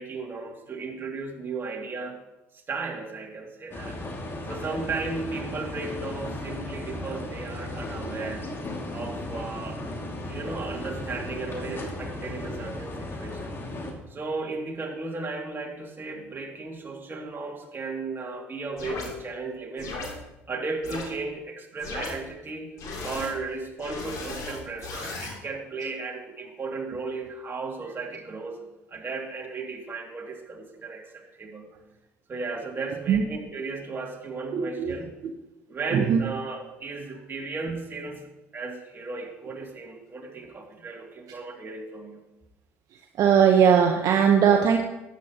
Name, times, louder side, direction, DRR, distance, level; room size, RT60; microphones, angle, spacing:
voice 1, 0.0-2.2 2.7-4.0 4.5-8.5 8.9-9.9 10.3-13.5 14.1-20.0 20.5-22.8 23.0-28.6 28.9-31.7 32.3-35.1 35.7-42.2, right 3 dB, 35° right, 0 dB, 2.4 m, -35 dB
sound 1, 3.7-13.9, left 1 dB, 35° left, 2.2 m, -35 dB
sound 2, 18.8-19.1 19.8-20.1 20.8-21.0 21.8-22.1 22.8-23.3 23.8-25.3, left 3 dB, 60° left, 2.9 m, -35 dB
voice 2, 34.5-35.0 35.9-36.2 42.9-44.8, right 7 dB, 60° right, 3 dB, 0.9 m, -20 dB
12.5 x 9.6 x 2.9 m, 0.98 s
hypercardioid pair, 65°, 7 cm